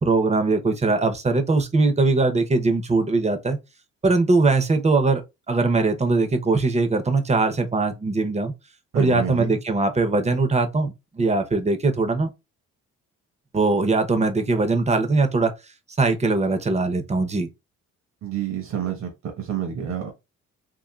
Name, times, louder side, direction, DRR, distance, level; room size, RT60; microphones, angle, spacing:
voice 1, 0.0-3.6 4.0-5.2 5.5-8.5 8.9-12.3 13.5-15.5 16.0-17.5, right 3 dB, 20° right, 0.7 m, -21 dB
voice 2, 8.9-9.6 18.2-19.1 19.4-20.1, right 9 dB, 65° right, 1.1 m, -28 dB
3.8 x 2.5 x 2.3 m
cardioid pair, 90°, 30 cm